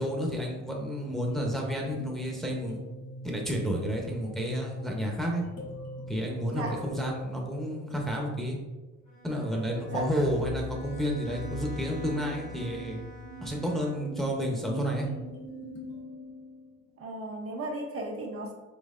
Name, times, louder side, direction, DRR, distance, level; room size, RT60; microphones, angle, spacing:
voice 1, 0.0-2.8 3.2-5.4 6.1-8.6 9.2-13.0 13.4-15.1, equal, ahead, -1 dB, 0.8 m, -31 dB
sound 1, 1.1-3.7 5.3-8.3 9.7-17.0, left 4 dB, 55° left, 0.9 m, -44 dB
sound 2, 2.1-8.0 10.1-16.0, right 4 dB, 75° right, 1.3 m, -46 dB
voice 2, 6.5-6.8 9.9-10.1 17.0-18.5, right 2 dB, 45° right, 0 dB, 0.8 m, -35 dB
Bowed string instrument, 9.1-14.3, equal, 70° left, 1.2 m, -48 dB
5.3 x 3.3 x 2.5 m, 1.2 s
cardioid pair, 90°, 30 cm